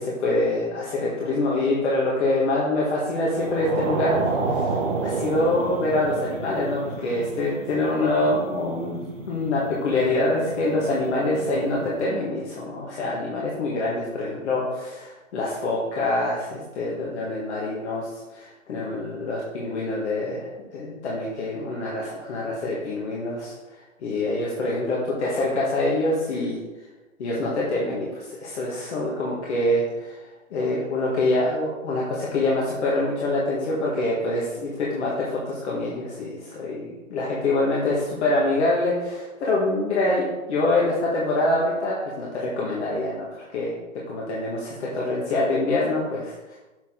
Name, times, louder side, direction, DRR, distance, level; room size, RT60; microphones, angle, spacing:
voice 1, 0.0-4.7 5.0-9.0 9.3-23.5 24.0-26.6 27.2-30.2 30.5-43.7 44.1-46.6, left 2 dB, 55° left, -4 dB, 1.8 m, -25 dB
sound 1, 3.2-12.0, right 4 dB, 45° right, 1.5 m, -31 dB
7.0 x 6.4 x 3.8 m, 1.1 s
hypercardioid pair, 140°, 41 cm